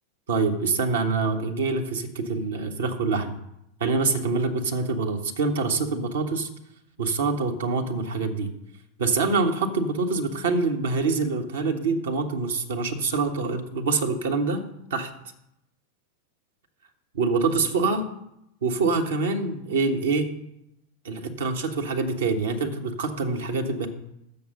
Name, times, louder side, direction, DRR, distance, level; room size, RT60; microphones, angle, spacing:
voice 1, 0.3-3.4 3.8-6.5 7.0-8.5 9.0-14.6 14.9-15.1 17.1-18.1 18.6-20.3 21.0-23.9, right 4 dB, 65° right, 4 dB, 1.2 m, -25 dB
7.2 x 6.8 x 6.7 m, 0.82 s
figure-of-eight pair, 90°, 0 cm